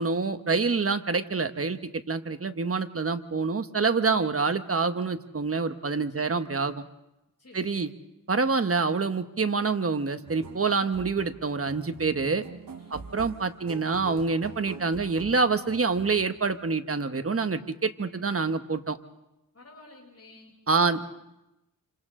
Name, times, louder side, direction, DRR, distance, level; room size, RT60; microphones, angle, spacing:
voice 1, 0.0-1.8 2.1-6.8 7.5-7.9 8.3-12.4 12.9-19.0 20.7-21.1, right 4 dB, 45° right, 8 dB, 1.2 m, -26 dB
voice 2, 7.4-7.8 12.8-13.1 19.5-21.1, left 2 dB, 50° left, 0 dB, 7.2 m, -52 dB
sound 1, 10.3-16.6, right 5 dB, 80° right, 1.2 m, -46 dB
28.0 x 27.0 x 3.8 m, 0.89 s
wide cardioid pair, 75°, 33 cm